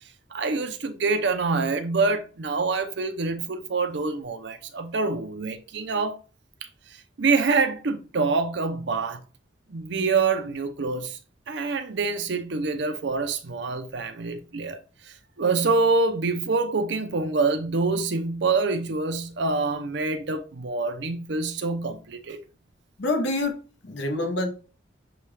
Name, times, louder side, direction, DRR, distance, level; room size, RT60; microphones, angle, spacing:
voice 1, 0.3-6.2 6.9-9.2 9.7-11.2 11.5-22.4, right 4 dB, 60° right, 0.6 m, -26 dB
voice 2, 23.0-23.6 23.8-24.5, left 2 dB, 60° left, 1.0 m, -26 dB
6.8 x 2.3 x 3.2 m
head